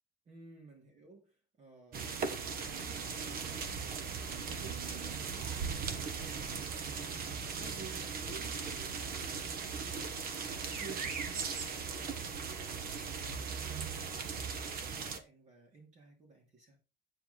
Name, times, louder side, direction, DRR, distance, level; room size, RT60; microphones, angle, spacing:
voice 1, 0.2-3.6 3.8-10.5 10.8-16.8, right 4 dB, 40° right, 3.2 m, -56 dB
sound 1, 1.9-15.2, right 5 dB, 55° right, 1.3 m, -38 dB
8.9 x 7.5 x 3.9 m
cardioid pair, 175°, 18 cm